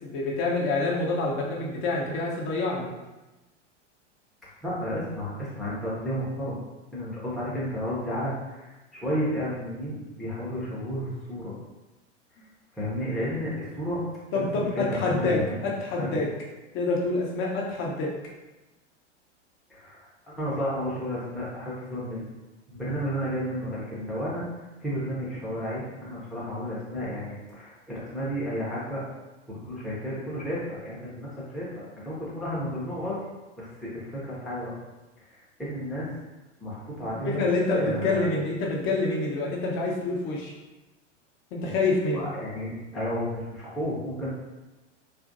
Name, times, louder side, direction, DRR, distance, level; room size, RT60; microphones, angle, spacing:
voice 1, 0.0-2.9 14.3-16.3 16.7-18.1 37.0-40.5 41.5-42.3, left 3 dB, 35° left, -2 dB, 0.7 m, -27 dB
voice 2, 4.6-6.6 6.9-11.5 12.7-14.0 14.3-15.6 16.0-16.2 19.7-20.1 20.4-22.2 22.7-24.5 24.8-29.0 29.5-33.2 33.6-34.7 35.2-36.1 36.6-38.4 42.1-44.3, equal, ahead, -9 dB, 0.6 m, -32 dB
2.7 x 2.5 x 2.5 m, 1.1 s
hypercardioid pair, 105°, 36 cm